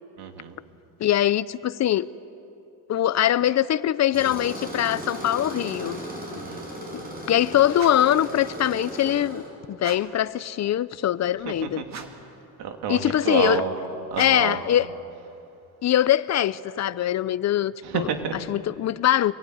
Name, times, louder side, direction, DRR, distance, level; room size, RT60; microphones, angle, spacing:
voice 1, 0.2-0.5 6.3-6.6 11.5-12.0 12.6-13.0 13.2-13.8 14.1-14.6 17.8-18.4, right 7 dB, 80° right, 2.6 m, -29 dB
voice 2, 1.0-2.1 2.9-6.0 7.3-9.4 9.7-11.8 12.9-13.6 14.2-14.9 15.8-19.3, left 11 dB, 45° left, 0.6 m, -22 dB
Tools, 4.1-9.5, equal, 20° right, 7.5 m, -36 dB
sound 1, 7.7-8.2 9.8-10.2 11.9-12.4 14.1-14.6, right 6 dB, 45° right, 2.1 m, -41 dB
26.5 x 22.0 x 9.3 m
cardioid pair, 135°, 39 cm